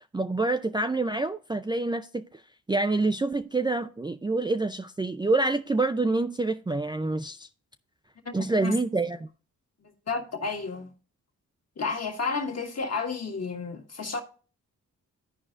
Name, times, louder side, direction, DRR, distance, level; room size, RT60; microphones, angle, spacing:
voice 1, 0.1-2.4 2.7-7.5 8.3-9.3, right 2 dB, 15° right, 0.4 m, -27 dB
voice 2, 8.2-8.8 9.8-10.9 11.8-14.2, left 4 dB, 45° left, 1.7 m, -32 dB
14.0 x 4.8 x 2.5 m
cardioid pair, 50°, 35 cm